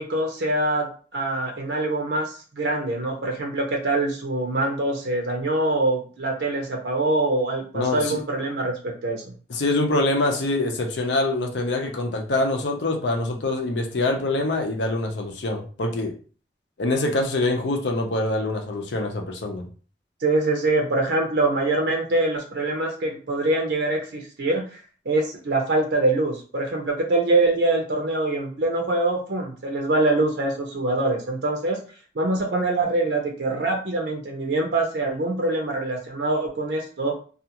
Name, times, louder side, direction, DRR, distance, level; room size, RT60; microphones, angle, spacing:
voice 1, 0.0-9.2 20.2-24.7 25.1-31.8 32.1-37.1, right 2 dB, 75° right, 2 dB, 0.6 m, -24 dB
voice 2, 7.7-8.2 9.5-16.1 16.8-19.6, left 2 dB, 85° left, 3 dB, 0.6 m, -24 dB
2.4 x 2.4 x 2.8 m, 0.39 s
head